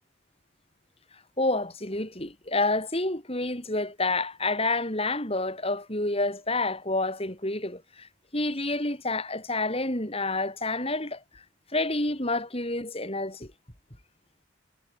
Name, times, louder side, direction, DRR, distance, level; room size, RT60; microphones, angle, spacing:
voice 1, 1.4-11.4 11.7-13.5, left 2 dB, 25° left, 5.0 m, -29 dB
head